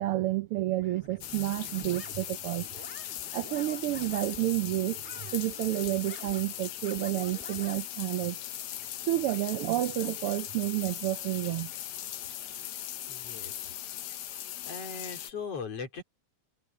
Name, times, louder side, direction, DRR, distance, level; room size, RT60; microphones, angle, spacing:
voice 1, 0.0-2.7 3.3-8.4 9.0-11.7, right 16 dB, 90° right, 1.2 m, -30 dB
sound 1, 0.8-4.5 5.0-7.8, left 1 dB, 5° left, 1.4 m, -49 dB
sound 2, 1.2-15.3, left 12 dB, 75° left, 2.4 m, -39 dB
voice 2, 13.1-13.7 14.7-16.0, left 5 dB, 55° left, 4.7 m, -39 dB
omnidirectional pair, 3.3 m